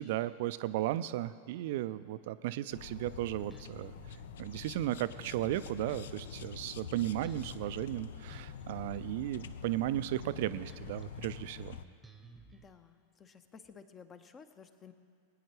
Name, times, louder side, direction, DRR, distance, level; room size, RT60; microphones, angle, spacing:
voice 1, 0.0-3.9 4.4-11.8, right 14 dB, 50° right, 14 dB, 0.4 m, -35 dB
sound 1, 2.7-11.8, left 8 dB, 60° left, 0.4 m, -46 dB
Bass guitar, 3.5-12.6, right 2 dB, 5° right, 1.0 m, -56 dB
voice 2, 12.5-14.9, left 6 dB, 25° left, 10 dB, 0.7 m, -54 dB
22.0 x 9.4 x 3.3 m, 2.4 s
figure-of-eight pair, 90°, 0 cm